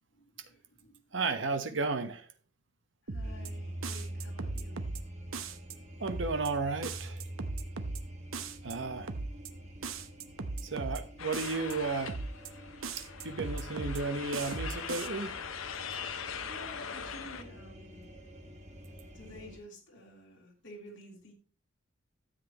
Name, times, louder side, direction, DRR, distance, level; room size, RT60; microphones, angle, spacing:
voice 1, 0.1-1.0 3.0-4.8 16.5-18.1 19.1-21.3, left 1 dB, 60° left, 3.1 m, -51 dB
voice 2, 1.1-2.2 6.0-7.2 8.6-9.1 10.6-12.2 13.2-15.3, right 3 dB, 65° right, 1.1 m, -33 dB
sound 1, 3.1-3.5 3.8-5.0 5.3-5.7 6.1-6.5 6.8-8.0 8.3-8.7 9.1-9.5 9.8-11.0 11.3-11.7 12.1-12.5 12.8-14.0 14.3-15.1, right 3 dB, 90° right, 0.9 m, -37 dB
sound 2, 3.2-19.6, right 1 dB, 35° right, 1.6 m, -46 dB
sound 3, 11.2-17.4, left 6 dB, 90° left, 0.9 m, -41 dB
13.0 x 7.7 x 3.0 m
head